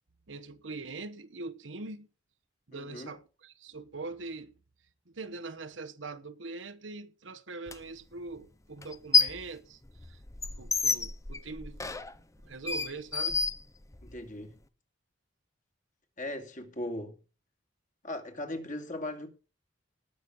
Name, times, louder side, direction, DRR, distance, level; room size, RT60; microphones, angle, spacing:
voice 1, 0.3-2.1 2.7-4.6 5.1-10.2 10.6-11.8 12.4-13.4, right 3 dB, 85° right, 1.1 m, -42 dB
voice 2, 2.7-3.1 14.0-14.6 16.2-17.2 18.0-19.3, left 1 dB, 45° left, 2.5 m, -38 dB
sound 1, 7.7-7.8 8.8-9.5 9.8-14.2, left 5 dB, 15° left, 0.7 m, -29 dB
18.5 x 6.4 x 5.4 m
head